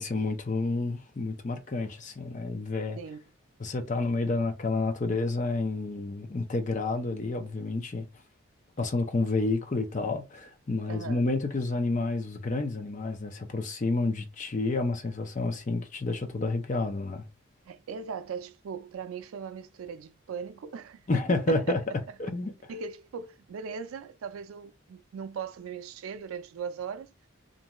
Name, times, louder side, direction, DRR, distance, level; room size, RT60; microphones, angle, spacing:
voice 1, 0.0-3.0 3.6-8.0 8.8-17.3 21.1-21.8 22.2-22.5, left 3 dB, 35° left, 0.5 m, -29 dB
voice 2, 10.9-11.3 17.7-21.8 22.7-27.1, right 6 dB, 85° right, 0.4 m, -39 dB
2.6 x 2.3 x 2.9 m
head